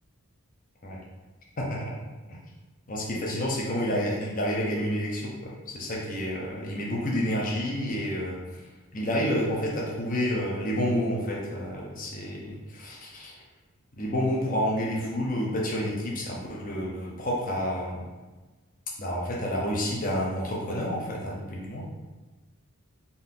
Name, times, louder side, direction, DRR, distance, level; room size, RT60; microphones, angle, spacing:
voice 1, 2.9-8.6 8.9-13.3 14.0-18.0 19.0-21.8, equal, 40° left, -3 dB, 0.8 m, -29 dB
3.9 x 2.8 x 3.8 m, 1.2 s
head